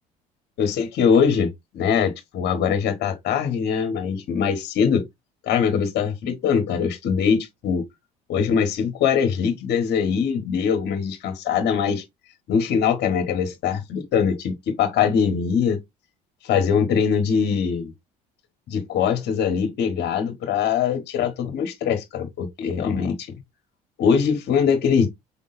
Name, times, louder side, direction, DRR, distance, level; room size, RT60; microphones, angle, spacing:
voice 1, 0.6-5.0 5.4-7.8 8.3-12.0 12.5-15.8 16.4-17.9 18.7-23.2 24.0-25.1, left 7 dB, 60° left, 1.5 m, -22 dB
4.8 x 3.7 x 2.6 m
supercardioid pair, 70°, 19 cm